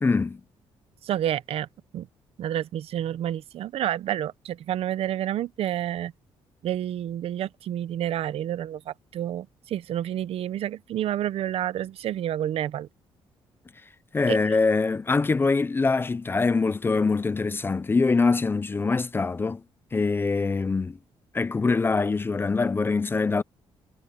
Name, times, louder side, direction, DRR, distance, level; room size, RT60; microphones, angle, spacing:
voice 1, 0.0-0.4 14.1-19.6 19.9-21.0 21.3-23.4, left 4 dB, 20° left, 0.5 m, -24 dB
voice 2, 1.0-1.7 1.9-2.1 2.4-6.1 6.6-12.9 14.3-14.4, right 11 dB, 70° right, 0.8 m, -29 dB
cardioid pair, 125°, 10 cm